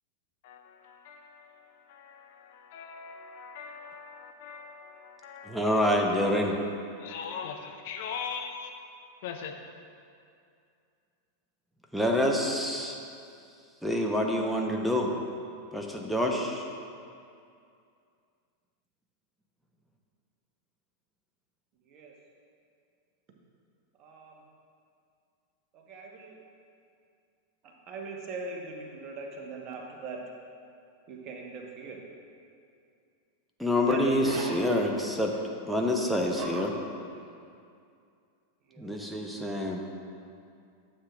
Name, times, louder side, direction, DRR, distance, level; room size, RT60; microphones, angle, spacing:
voice 1, 0.4-5.6 7.0-8.7 9.2-9.6, left 6 dB, 50° left, 4 dB, 0.6 m, -41 dB
voice 2, 5.4-6.6 11.9-13.0 13.8-15.1 15.7-16.7 33.6-35.3 35.7-36.7 38.8-39.9, left 1 dB, ahead, 1 dB, 0.9 m, -27 dB
voice 3, 24.0-24.4 25.7-26.4 27.6-30.2 31.1-32.0 33.7-34.6 36.4-36.6 38.7-39.0, right 3 dB, 35° right, 0 dB, 1.2 m, -40 dB
13.0 x 7.5 x 2.5 m, 2.4 s
figure-of-eight pair, 90°, 0 cm